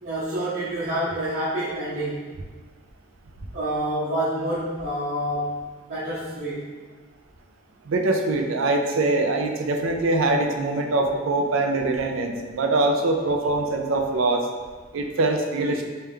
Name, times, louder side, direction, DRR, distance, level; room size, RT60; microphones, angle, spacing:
voice 1, 0.0-2.3 3.5-5.6 5.9-6.7, right 1 dB, 45° right, -12 dB, 0.8 m, -27 dB
voice 2, 7.9-14.5 14.9-15.9, right 2 dB, 90° right, 4 dB, 0.5 m, -23 dB
3.4 x 3.3 x 3.3 m, 1.4 s
head